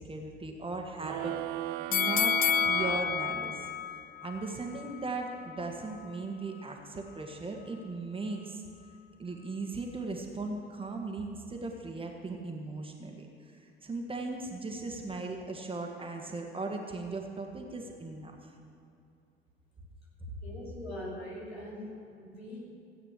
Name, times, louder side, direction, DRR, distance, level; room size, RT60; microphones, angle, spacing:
voice 1, 0.0-1.4 1.9-2.4 2.6-3.7 3.9-8.6 9.2-18.5 20.2-20.3, right 3 dB, 15° right, 2 dB, 1.7 m, -38 dB
sound 1, 1.0-4.0, right 16 dB, 55° right, 0.5 m, -37 dB
sound 2, 1.9-5.0 5.4-5.5, left 9 dB, 30° left, 0.5 m, -30 dB
voice 2, 20.4-22.7, left 1 dB, 80° left, -5 dB, 3.1 m, -42 dB
16.0 x 8.9 x 6.5 m, 2.5 s
figure-of-eight pair, 65°, 31 cm